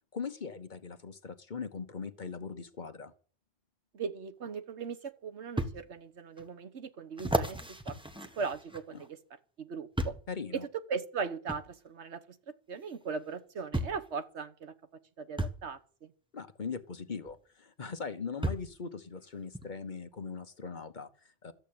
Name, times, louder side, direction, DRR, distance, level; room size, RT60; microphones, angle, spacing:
voice 1, 0.1-3.1 8.9-9.0 10.3-10.7 16.3-21.5, left 5 dB, 45° left, 1.1 m, -40 dB
voice 2, 3.9-8.0 8.3-9.2 9.6-10.2 10.9-12.2 12.7-14.7 15.2-16.1, right 5 dB, 80° right, 1.4 m, -39 dB
sound 1, 4.5-4.6 5.6-5.8 6.4-6.5 7.2-9.1 10.0-10.3 11.5-11.6 12.9-13.0 13.7-14.1 15.4-15.6 17.3-17.4 18.4-18.8 19.5-19.7, right 1 dB, 5° right, 1.1 m, -33 dB
13.5 x 7.6 x 8.6 m
omnidirectional pair, 1.2 m